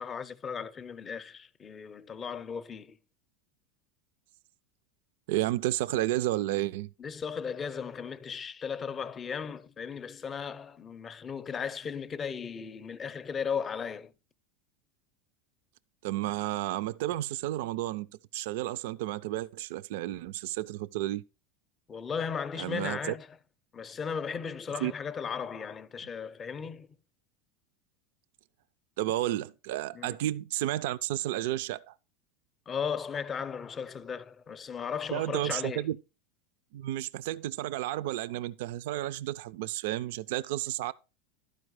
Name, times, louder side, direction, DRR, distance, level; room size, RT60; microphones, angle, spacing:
voice 1, 0.0-3.0 7.0-14.1 21.9-23.3 23.7-26.9 29.9-30.2 32.7-35.8, left 6 dB, 25° left, 0.6 m, -36 dB
voice 2, 5.3-6.9 16.0-18.1 18.3-21.2 22.5-23.1 24.8-24.9 29.0-31.9 35.1-36.0 36.7-40.9, right 15 dB, 75° right, 0.3 m, -32 dB
12.0 x 4.7 x 4.7 m
supercardioid pair, 120°, 0 cm